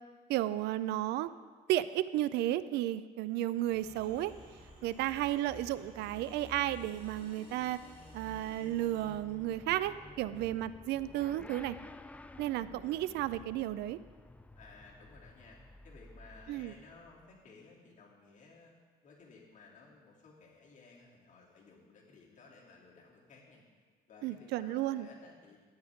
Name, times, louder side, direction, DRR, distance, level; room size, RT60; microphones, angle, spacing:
voice 1, 0.3-1.3 1.7-4.3 4.8-7.8 8.1-11.8 12.4-14.0 16.5-16.7 24.2-25.1, right 14 dB, 80° right, 15 dB, 0.4 m, -33 dB
Motorcycle / Accelerating revving vroom, 3.6-17.4, left 2 dB, 10° left, 0.3 m, -54 dB
sound 1, 3.7-9.1, right 1 dB, 30° right, 3.7 m, -57 dB
voice 2, 14.5-15.6 15.8-18.7 19.0-23.7 24.1-25.6, left 4 dB, 50° left, -4 dB, 2.8 m, -57 dB
13.0 x 9.7 x 3.6 m, 1.6 s
cardioid pair, 110°, 17 cm